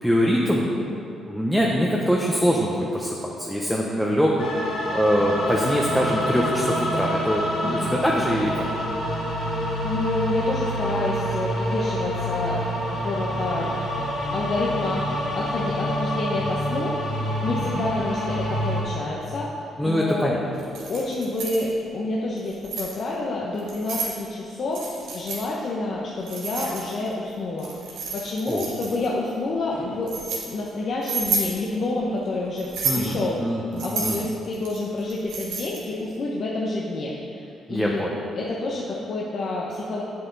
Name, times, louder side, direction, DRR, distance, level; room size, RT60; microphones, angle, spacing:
voice 1, 0.0-0.7 1.3-4.4 4.9-8.7 17.7-17.8 19.8-20.4 28.5-28.7 32.8-34.2 37.7-38.1, equal, ahead, -3 dB, 0.9 m, -23 dB
sound 1, 4.4-18.8, equal, 75° left, 2.2 m, -27 dB
voice 2, 9.8-12.6 13.0-13.7 14.3-15.0 15.3-17.0 17.4-20.3 20.9-24.8 25.1-33.4 33.8-38.1 38.3-40.0, left 2 dB, 55° left, -4 dB, 1.0 m, -28 dB
Keys jangling, 20.6-21.7 22.4-22.9 23.6-24.1 24.7-25.4 26.3-27.1 27.6-29.1 29.7-30.4 31.0-31.5 32.6-33.1 33.8-35.9, right 4 dB, 90° right, 1.6 m, -30 dB
8.2 x 7.8 x 4.0 m, 2.6 s
cardioid pair, 90°, 0 cm